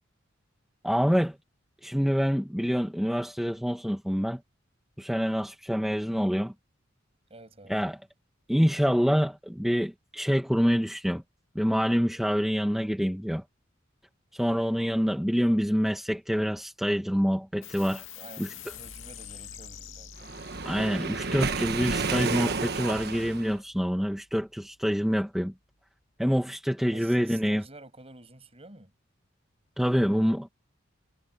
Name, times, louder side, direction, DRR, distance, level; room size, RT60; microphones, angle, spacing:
voice 1, 0.8-1.4 1.8-4.4 5.0-6.5 7.7-8.0 8.5-11.2 11.5-13.4 14.3-18.0 18.4-18.5 20.6-25.5 26.2-27.6 29.8-30.5, equal, ahead, 1.2 m, -26 dB
voice 2, 7.3-7.8 18.1-20.3 26.9-28.9, right 2 dB, 30° right, 7.2 m, -49 dB
sound 1, 17.6-24.5, left 8 dB, 75° left, 2.5 m, -47 dB
Waves surf, 20.2-23.5, right 4 dB, 55° right, 1.4 m, -31 dB
head